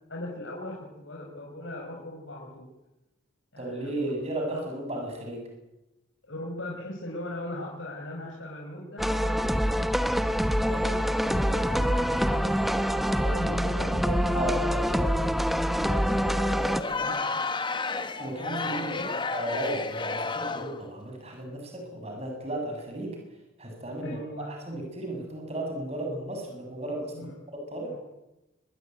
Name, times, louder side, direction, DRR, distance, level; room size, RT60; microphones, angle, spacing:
voice 1, 0.1-2.7 3.5-4.6 6.3-10.0 10.5-15.4 15.8-17.6 18.6-19.2 24.0-24.5 27.1-27.4 27.9-28.0, left 1 dB, 70° left, -2 dB, 5.1 m, -39 dB
voice 2, 3.6-5.5 14.3-15.1 18.2-18.8 19.3-23.2 23.6-24.2 24.5-28.0, right 1 dB, 30° right, 2 dB, 7.3 m, -34 dB
sound 1, 9.0-16.8, equal, ahead, 1.0 m, -25 dB
Crowd, 16.7-20.8, left 3 dB, 25° left, 1.3 m, -31 dB
25.0 x 21.0 x 9.3 m, 0.95 s
head